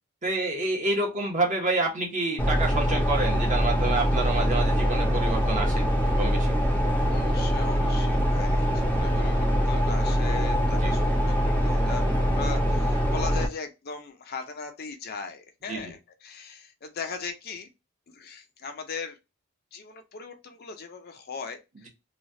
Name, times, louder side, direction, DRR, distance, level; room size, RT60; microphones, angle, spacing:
voice 1, 0.2-5.9 6.2-6.5 10.8-10.9 15.7-15.8, right 2 dB, 40° right, 1.0 m, -28 dB
sound 1, 2.4-13.5, equal, 10° left, 0.6 m, -23 dB
voice 2, 7.1-17.7 18.1-19.2 19.7-21.9, left 5 dB, 50° left, 0.5 m, -39 dB
3.1 x 2.3 x 2.6 m
head